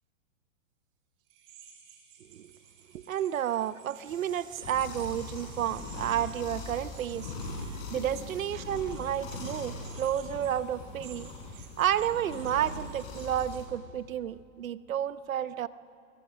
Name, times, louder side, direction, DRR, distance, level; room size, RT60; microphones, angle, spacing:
sound 1, 1.3-13.6, right 8 dB, 35° right, 4.6 m, -54 dB
voice 1, 2.2-2.5 2.9-7.3 7.9-11.3 11.8-15.7, right 10 dB, 80° right, 15 dB, 1.0 m, -31 dB
sound 2, 4.0-9.9, right 4 dB, 10° right, 2.6 m, -53 dB
sound 3, 4.6-13.7, left 3 dB, 45° left, 6.0 m, -41 dB
28.0 x 22.5 x 6.3 m, 2.6 s
hypercardioid pair, 125°, 40 cm